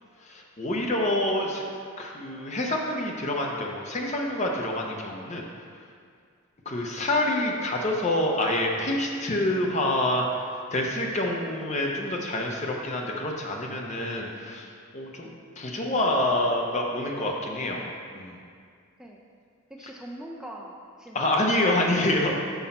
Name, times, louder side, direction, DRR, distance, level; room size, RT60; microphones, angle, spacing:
voice 1, 0.2-1.6 2.0-5.5 6.7-17.8 18.1-18.4 21.1-22.4, left 1 dB, 30° left, 0 dB, 0.7 m, -27 dB
voice 2, 17.5-17.9 19.0-19.2 19.7-21.3, right 1 dB, 5° right, -1 dB, 0.3 m, -43 dB
5.9 x 5.5 x 4.2 m, 2.2 s
head